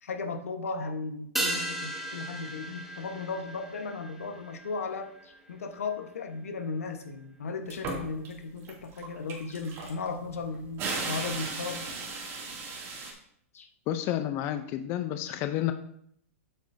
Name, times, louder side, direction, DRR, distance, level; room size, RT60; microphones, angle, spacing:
voice 1, 0.0-11.9 12.7-12.8 13.5-13.7 14.8-14.9 15.2-15.3, left 4 dB, 90° left, 6 dB, 1.2 m, -36 dB
sound 1, 1.4-6.1 6.3-6.4, right 1 dB, 5° right, 1.2 m, -36 dB
sound 2, 7.7-8.3 8.6-13.1, right 3 dB, 35° right, 2.6 m, -36 dB
voice 2, 13.9-15.7, left 12 dB, 35° left, 9 dB, 0.6 m, -30 dB
8.2 x 8.0 x 2.7 m, 0.68 s
hypercardioid pair, 130°, 7 cm